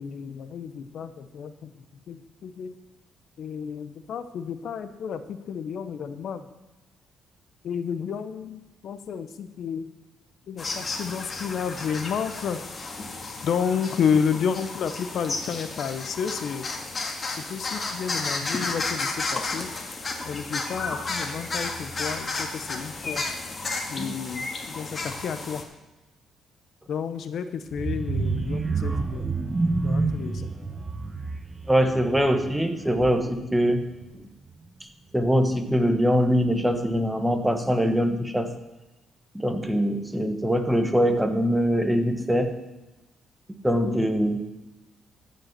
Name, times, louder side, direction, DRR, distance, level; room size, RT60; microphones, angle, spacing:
voice 1, 0.0-2.7 3.4-6.4 7.6-9.9 10.5-12.6 13.4-16.7 17.3-19.7 20.2-23.2 23.9-25.6 26.9-29.3 29.8-30.5 43.8-44.0, left 7 dB, 65° left, 11 dB, 0.8 m, -31 dB
sound 1, 10.6-25.6, left 3 dB, 35° left, 1.8 m, -32 dB
sound 2, 27.7-33.5 33.9-34.1 34.4-34.5, right 3 dB, 25° right, 1.0 m, -29 dB
voice 2, 31.7-33.9 35.1-38.5 39.3-42.6 43.6-44.4, equal, 5° right, 7 dB, 1.4 m, -23 dB
14.0 x 5.5 x 7.4 m, 1.0 s
cardioid pair, 90°, 0 cm